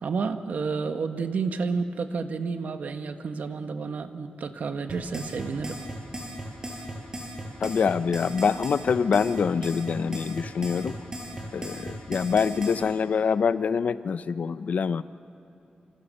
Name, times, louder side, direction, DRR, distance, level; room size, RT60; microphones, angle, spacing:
voice 1, 0.0-5.8, right 4 dB, 70° right, 8 dB, 1.3 m, -30 dB
sound 1, 4.9-12.8, right 1 dB, 25° right, 6.0 m, -37 dB
voice 2, 7.6-11.0 11.5-15.0, left 6 dB, 60° left, 14 dB, 0.6 m, -25 dB
27.5 x 27.5 x 6.6 m, 3.0 s
wide cardioid pair, 140°, 3 cm